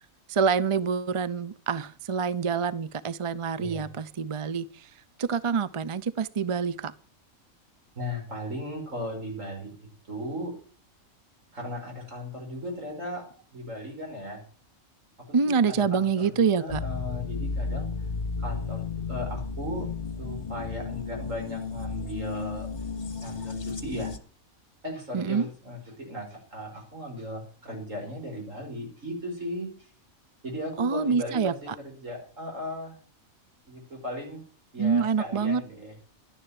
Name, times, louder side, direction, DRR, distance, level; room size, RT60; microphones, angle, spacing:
voice 1, 0.3-4.9 5.2-6.9 15.3-16.8 25.1-25.5 30.8-31.7 34.8-35.6, right 5 dB, 35° right, 0.5 m, -26 dB
voice 2, 8.0-9.7 10.1-10.6 11.5-14.4 15.3-17.9 18.4-19.9 20.2-22.7 23.2-24.1 24.8-29.7 30.4-33.0 33.7-34.4 34.7-35.9, left 1 dB, 65° right, 5.9 m, -37 dB
sound 1, 16.7-24.2, left 4 dB, 35° left, 1.4 m, -33 dB
12.0 x 10.0 x 8.8 m
omnidirectional pair, 1.4 m